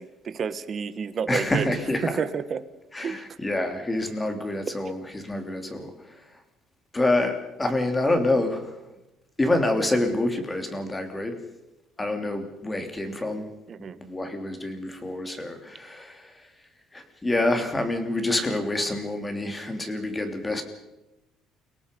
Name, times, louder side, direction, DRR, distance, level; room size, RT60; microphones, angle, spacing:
voice 1, 0.0-1.7 2.0-2.6 3.0-3.2 13.7-14.0, right 6 dB, 40° right, 12 dB, 1.4 m, -30 dB
voice 2, 1.3-2.1 2.9-5.9 6.9-8.6 9.4-11.4 12.0-13.5 13.8-16.3 16.9-20.6, left 2 dB, 15° left, 6 dB, 3.3 m, -27 dB
29.5 x 18.0 x 5.4 m, 0.96 s
cardioid pair, 125°, 0 cm